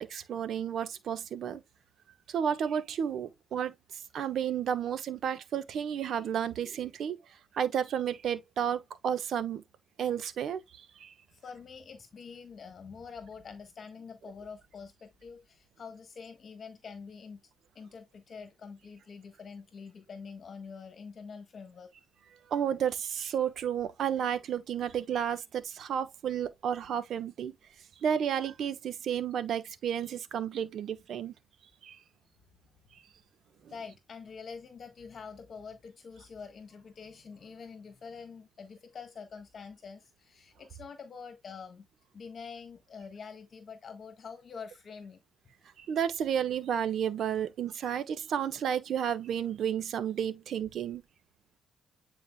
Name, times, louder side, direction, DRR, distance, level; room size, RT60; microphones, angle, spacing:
voice 1, 0.0-1.6 2.3-7.2 7.5-9.6 10.0-11.1 22.5-27.5 28.0-31.3 31.8-32.0 33.6-33.7 45.8-51.0, right 8 dB, 65° right, 1.1 m, -32 dB
voice 2, 11.3-17.4 17.7-21.9 32.6-32.7 33.7-41.9 42.1-45.2, left 5 dB, 50° left, 1.4 m, -46 dB
9.4 x 4.6 x 2.2 m
cardioid pair, 90°, 0 cm